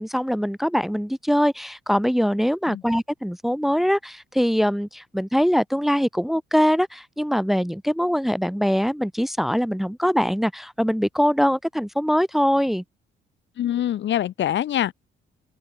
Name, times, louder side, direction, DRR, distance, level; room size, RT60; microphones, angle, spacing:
voice 1, 0.0-12.8, equal, ahead, 1.0 m, -22 dB
voice 2, 13.6-14.9, left 11 dB, 65° left, 1.5 m, -24 dB
open air
cardioid pair, 90°, 20 cm